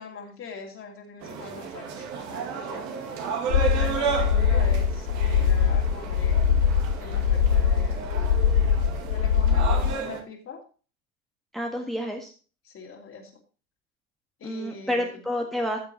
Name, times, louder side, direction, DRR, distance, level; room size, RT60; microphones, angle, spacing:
voice 1, 0.0-2.9 3.6-6.7 7.0-8.0 9.1-10.6 12.6-13.3 14.4-15.1, left 5 dB, 30° left, 0 dB, 2.8 m, -41 dB
sound 1, 1.2-10.2, right 6 dB, 40° right, 2.3 m, -33 dB
sound 2, 3.5-9.9, left 7 dB, 60° left, 0.9 m, -22 dB
voice 2, 11.5-12.3 14.4-15.8, left 1 dB, ahead, 2 dB, 1.6 m, -29 dB
14.0 x 7.4 x 3.0 m, 0.36 s
figure-of-eight pair, 80°, 43 cm